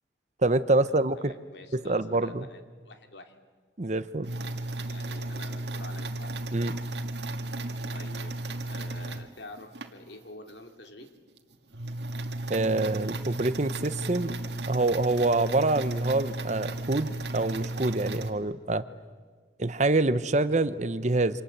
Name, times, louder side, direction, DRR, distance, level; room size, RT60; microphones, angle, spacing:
voice 1, 0.4-1.3 1.7-2.4 3.8-4.3 6.5-6.7 12.5-14.3 14.7-18.9 19.6-21.4, right 2 dB, 40° right, 14 dB, 0.9 m, -26 dB
voice 2, 1.2-3.4 4.4-6.4 6.7-6.8 7.9-11.1, left 2 dB, 75° left, 6 dB, 2.7 m, -48 dB
sound 1, 4.2-9.9 10.5-10.6 11.0-11.1 11.4-18.3, right 2 dB, 75° right, 1.8 m, -34 dB
27.5 x 26.0 x 8.0 m, 1.5 s
head